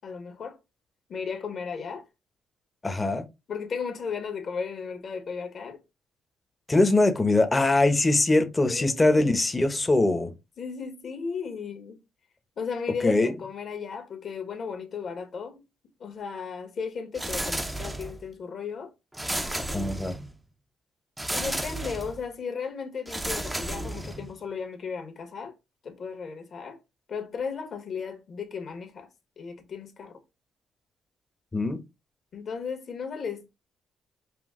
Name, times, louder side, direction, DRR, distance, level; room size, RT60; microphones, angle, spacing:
voice 1, 0.0-0.6 1.1-2.1 3.5-5.8 8.6-9.4 10.6-12.0 12.6-15.6 16.0-18.9 21.3-25.5 25.8-26.8 27.1-29.1 29.4-30.2 32.3-33.6, left 5 dB, 55° left, 1.5 m, -35 dB
voice 2, 2.8-3.3 6.7-10.3 13.0-13.3 19.7-20.1 31.5-31.8, left 2 dB, 20° left, 0.9 m, -22 dB
sound 1, 17.1-18.3 19.1-20.4 21.2-22.2 23.1-24.4, right 1 dB, 10° right, 0.7 m, -32 dB
6.0 x 2.3 x 3.6 m
cardioid pair, 90°, 0 cm